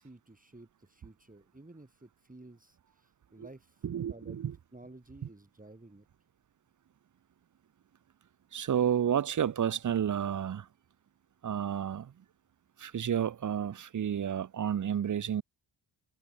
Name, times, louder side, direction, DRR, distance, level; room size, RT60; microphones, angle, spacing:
voice 1, 0.0-4.4 4.7-6.1, right 2 dB, 15° right, 3.6 m, -53 dB
voice 2, 3.8-4.5 8.5-10.7 11.4-12.1 12.8-15.4, right 9 dB, 40° right, 0.5 m, -31 dB
wide cardioid pair, 85°, 47 cm